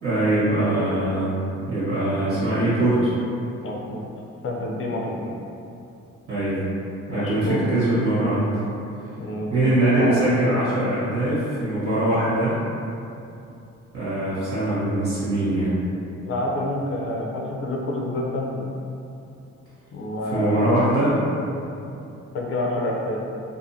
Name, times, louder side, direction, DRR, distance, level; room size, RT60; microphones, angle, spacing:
voice 1, 0.0-1.3 1.7-3.1 6.3-6.6 7.1-8.5 9.5-12.6 13.9-15.7 20.3-21.2, right 1 dB, 45° right, -11 dB, 1.4 m, -22 dB
voice 2, 3.6-4.1 4.4-5.3 7.1-7.7 9.2-9.5 9.8-10.1 16.3-18.7 19.9-20.9 22.3-23.2, left 1 dB, 45° left, -2 dB, 0.5 m, -28 dB
2.6 x 2.5 x 2.7 m, 2.7 s
cardioid pair, 90°, 30 cm